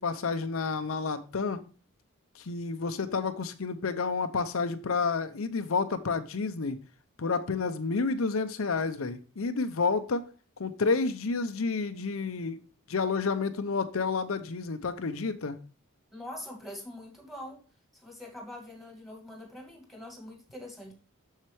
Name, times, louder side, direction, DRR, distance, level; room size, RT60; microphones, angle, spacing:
voice 1, 0.0-1.6 2.3-6.8 7.2-10.2 10.6-12.6 12.9-15.6, left 4 dB, 75° left, 9 dB, 0.7 m, -30 dB
voice 2, 16.1-17.6 17.9-20.9, left 1 dB, ahead, 1 dB, 2.1 m, -44 dB
7.5 x 6.6 x 3.2 m, 0.37 s
head